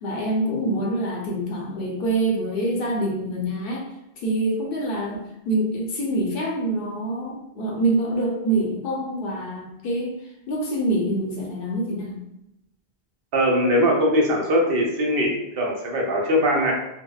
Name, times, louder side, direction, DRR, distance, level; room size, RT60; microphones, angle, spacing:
voice 1, 0.0-3.8 4.2-5.2 5.5-10.2 10.5-12.2, right 1 dB, 70° left, -1 dB, 0.8 m, -25 dB
voice 2, 13.3-16.7, equal, 70° right, -1 dB, 0.8 m, -21 dB
2.7 x 2.1 x 2.3 m, 0.86 s
omnidirectional pair, 1.0 m